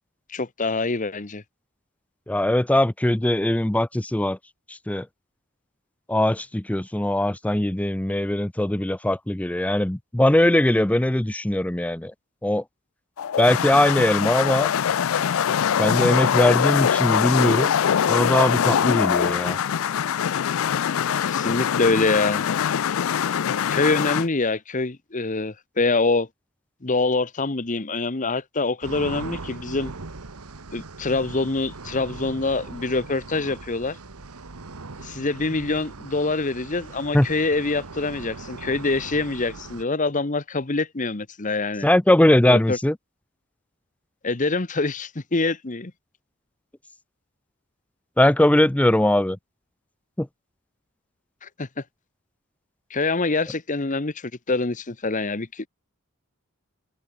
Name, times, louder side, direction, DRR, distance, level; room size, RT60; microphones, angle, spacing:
voice 1, 0.3-1.4 21.2-22.5 23.7-26.3 26.8-29.9 30.7-34.0 35.0-41.9 42.4-42.8 44.2-45.9 51.4-51.7 52.9-55.7, left 3 dB, 35° left, 1.0 m, -25 dB
voice 2, 2.3-4.4 4.7-5.1 6.1-12.1 12.4-12.6 13.4-14.7 15.8-17.7 18.1-19.6 37.1-37.3 41.8-43.0 48.2-49.4 50.2-50.3, left 1 dB, 5° left, 0.5 m, -20 dB
sound 1, 13.2-24.3, left 8 dB, 65° left, 0.4 m, -23 dB
sound 2, 28.8-39.8, right 3 dB, 90° right, 1.4 m, -39 dB
head